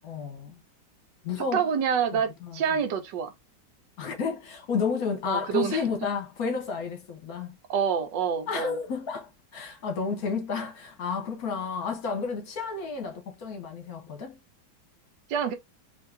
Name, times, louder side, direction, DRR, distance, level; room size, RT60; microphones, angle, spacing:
voice 1, 0.0-0.6 1.2-1.6 2.1-2.5 4.0-7.5 8.5-14.4, left 5 dB, 60° left, 1.5 m, -31 dB
voice 2, 1.5-3.3 5.2-5.8 7.7-8.8 15.3-15.5, right 7 dB, 80° right, 1.5 m, -27 dB
4.5 x 3.4 x 2.6 m
omnidirectional pair, 1.9 m